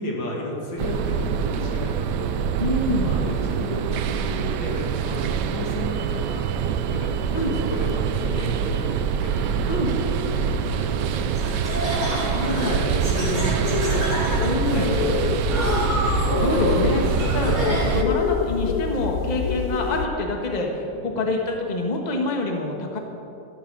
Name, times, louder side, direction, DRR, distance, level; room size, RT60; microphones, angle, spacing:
voice 1, 0.0-2.4 3.0-4.0 4.3-6.5 6.9-9.8 10.2-12.0 12.5-14.4 14.7-15.7 17.2-18.0 20.9-21.4, left 1 dB, 85° left, -2 dB, 3.0 m, -34 dB
sound 1, 0.8-18.0, right 7 dB, 75° right, 1.2 m, -25 dB
voice 2, 2.6-3.1 7.3-7.5 9.7-9.9 12.3-12.8 13.1-13.6 14.4-14.9 16.4-23.0, left 2 dB, 25° left, 2 dB, 1.3 m, -26 dB
Laughter, 11.3-18.2, equal, 25° right, 4.1 m, -28 dB
sound 2, 13.6-20.1, left 7 dB, 65° left, 1.0 m, -27 dB
13.0 x 12.0 x 5.4 m, 2.8 s
omnidirectional pair, 2.0 m